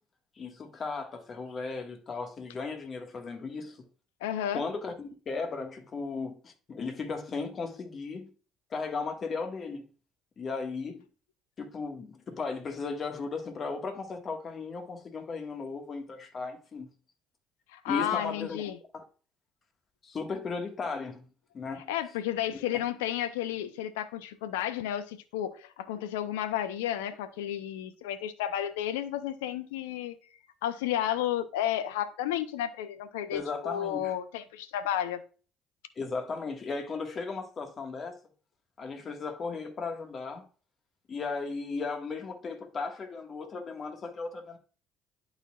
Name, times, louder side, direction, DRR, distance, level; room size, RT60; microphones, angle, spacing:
voice 1, 0.4-3.9 4.5-8.3 8.7-9.8 10.4-11.0 11.6-16.9 17.9-18.6 18.9-19.0 20.0-21.3 21.5-21.9 22.5-22.6 33.3-34.1 35.9-38.2 38.8-40.5 41.1-44.6, left 4 dB, 45° left, 1.7 m, -36 dB
voice 2, 4.2-4.6 17.7-18.8 21.9-30.2 30.6-35.2, left 11 dB, 85° left, 0.6 m, -32 dB
11.5 x 4.3 x 2.4 m
hypercardioid pair, 60°, 0 cm